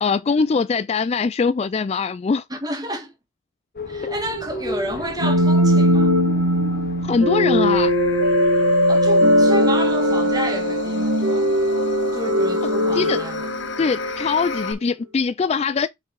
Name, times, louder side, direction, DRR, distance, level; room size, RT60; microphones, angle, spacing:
voice 1, 0.0-2.4 4.0-4.1 7.0-7.9 12.9-13.2 13.8-15.9, left 5 dB, 30° left, 0.3 m, -22 dB
voice 2, 2.5-3.1 3.9-6.1 8.9-11.5 12.1-13.5, right 1 dB, 20° right, 1.7 m, -30 dB
sound 1, 3.8-8.6, left 1 dB, 50° left, 1.0 m, -33 dB
sound 2, 5.2-14.2, equal, 65° right, 1.4 m, -19 dB
sound 3, 7.7-14.7, left 1 dB, 65° left, 1.3 m, -28 dB
5.5 x 4.8 x 4.6 m
head